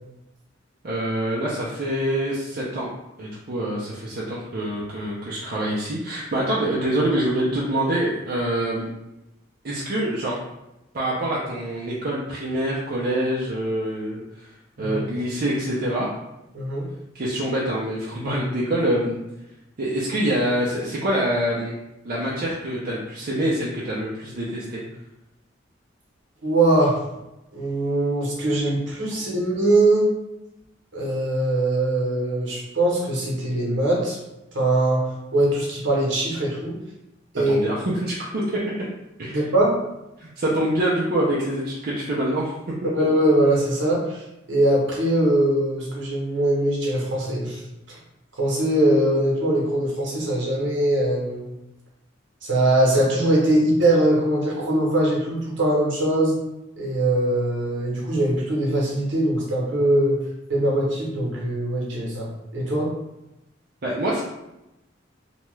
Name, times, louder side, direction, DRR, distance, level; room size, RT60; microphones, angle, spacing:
voice 1, 0.8-2.9 3.2-8.9 9.6-10.4 10.9-14.5 14.8-16.1 17.1-19.2 19.8-21.7 22.0-24.8 37.5-38.6 39.2-39.5 40.2-42.5 42.8-42.9 63.8-64.2, right 1 dB, 50° right, -5 dB, 0.5 m, -25 dB
voice 2, 16.5-16.9 26.4-27.0 27.5-30.1 30.9-34.2 34.5-35.0 35.3-36.8 37.3-37.6 39.3-39.8 42.9-44.2 44.5-47.6 47.9-48.0 48.4-51.4 52.4-56.4 56.8-60.2 60.5-62.9, right 1 dB, 70° right, -3 dB, 0.9 m, -21 dB
2.8 x 2.2 x 3.1 m, 0.92 s
head